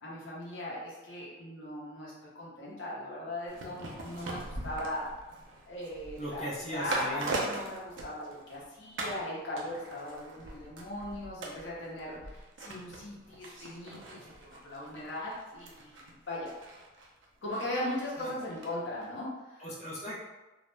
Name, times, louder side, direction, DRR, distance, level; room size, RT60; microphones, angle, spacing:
voice 1, 0.0-5.1 5.7-6.4 6.7-16.5 17.4-19.6, left 1 dB, 70° left, -6 dB, 0.8 m, -39 dB
sound 1, 3.5-8.6 9.0-9.3 9.6-18.7 19.0-19.1, right 2 dB, 75° right, 0.5 m, -41 dB
voice 2, 6.2-7.5 18.2-18.3 19.6-20.2, equal, 35° left, -8 dB, 0.5 m, -38 dB
2.4 x 2.1 x 3.1 m, 1.1 s
head